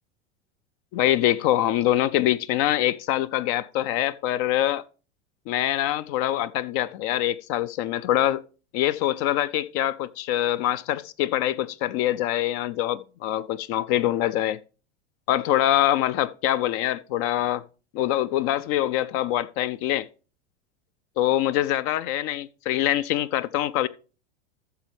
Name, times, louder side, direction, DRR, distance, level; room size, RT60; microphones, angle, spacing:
voice 1, 0.9-4.8 5.5-8.4 8.7-14.6 15.3-17.6 17.9-20.1 21.2-23.9, left 13 dB, 45° left, 0.4 m, -24 dB
13.5 x 6.6 x 3.2 m
hypercardioid pair, 90°, 35 cm